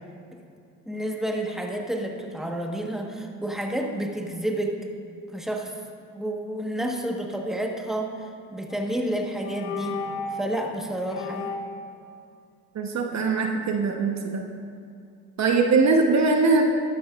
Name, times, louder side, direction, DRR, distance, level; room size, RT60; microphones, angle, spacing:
voice 1, 0.9-4.8 5.3-5.7 6.1-8.1 8.5-10.0 10.3-11.5, right 1 dB, ahead, 1 dB, 1.3 m, -30 dB
sound 1, 8.7-9.0 9.4-10.5 11.1-11.9, left 4 dB, 80° left, 0.9 m, -33 dB
voice 2, 12.7-14.4 15.4-16.6, right 4 dB, 45° right, 3 dB, 1.1 m, -21 dB
12.0 x 12.0 x 2.5 m, 2.5 s
supercardioid pair, 75°, 38 cm